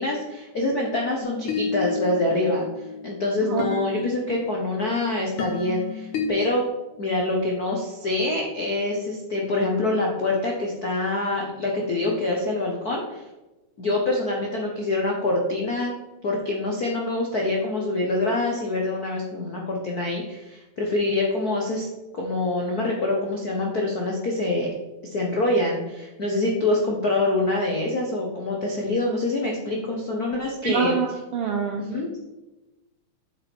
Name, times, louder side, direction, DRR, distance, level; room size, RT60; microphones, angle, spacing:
voice 1, 0.0-6.7 7.0-13.2 13.8-15.9 16.2-21.9 22.1-24.7 25.1-31.0 31.8-32.1, left 2 dB, 65° left, -1 dB, 0.9 m, -25 dB
sound 1, 1.2-6.3, left 4 dB, 80° left, 3.0 m, -32 dB
voice 2, 30.6-31.8, right 6 dB, 80° right, 4 dB, 1.3 m, -25 dB
9.5 x 7.3 x 4.5 m, 1.1 s
omnidirectional pair, 3.6 m